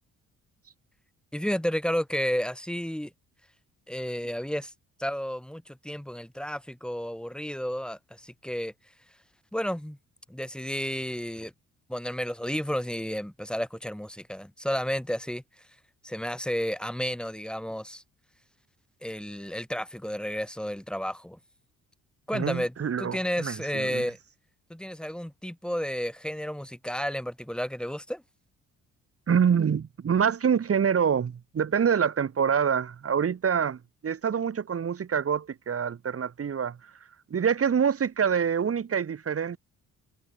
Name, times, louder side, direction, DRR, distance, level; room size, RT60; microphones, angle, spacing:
voice 1, 1.3-3.1 3.9-4.7 5.0-8.7 9.5-10.0 10.3-11.5 11.9-15.4 16.0-18.0 19.0-21.4 22.3-24.2 24.7-28.2, equal, 5° left, 4.7 m, -32 dB
voice 2, 22.3-24.0 29.3-36.8 37.3-39.6, right 7 dB, 50° right, 7.4 m, -26 dB
cardioid pair, 90°, 30 cm